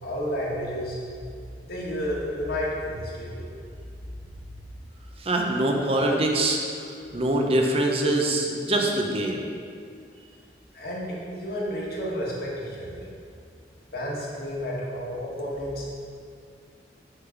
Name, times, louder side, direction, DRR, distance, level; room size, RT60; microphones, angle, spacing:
voice 1, 0.0-1.0 1.6-3.4 10.7-13.1 13.9-15.9, equal, 60° left, -5 dB, 1.6 m, -31 dB
voice 2, 5.2-6.6 7.1-9.4, right 1 dB, 35° right, 0 dB, 0.6 m, -23 dB
6.5 x 3.8 x 5.8 m, 2.2 s
head